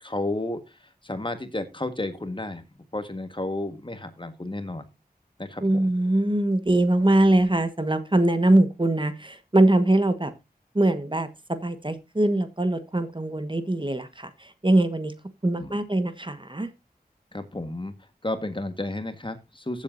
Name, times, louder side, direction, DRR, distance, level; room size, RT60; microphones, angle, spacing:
voice 1, 0.0-2.6 2.9-4.8 5.4-5.9 15.4-15.8 17.3-17.9 18.2-19.8, left 2 dB, 30° left, 9 dB, 1.5 m, -32 dB
voice 2, 5.6-10.3 10.7-15.1 15.4-16.7, right 1 dB, 30° right, 10 dB, 1.4 m, -22 dB
15.5 x 7.6 x 2.7 m, 0.25 s
wide cardioid pair, 45°, 16 cm